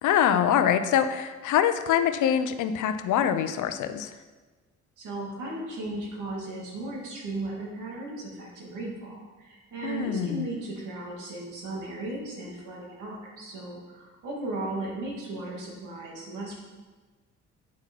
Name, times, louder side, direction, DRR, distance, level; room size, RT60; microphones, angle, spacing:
voice 1, 0.0-4.1 9.8-10.5, left 9 dB, 80° left, 10 dB, 0.7 m, -24 dB
voice 2, 5.0-16.6, right 2 dB, 85° right, -3 dB, 2.4 m, -36 dB
8.5 x 5.9 x 4.6 m, 1.3 s
cardioid pair, 90°, 30 cm